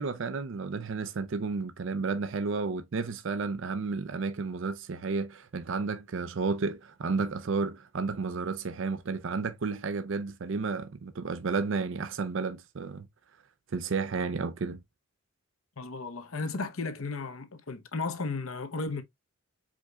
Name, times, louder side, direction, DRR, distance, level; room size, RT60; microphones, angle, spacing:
voice 1, 0.0-13.1 13.7-14.8, right 4 dB, 60° right, 0.5 m, -32 dB
voice 2, 15.8-19.0, left 3 dB, 75° left, 0.9 m, -34 dB
5.0 x 3.9 x 2.3 m
head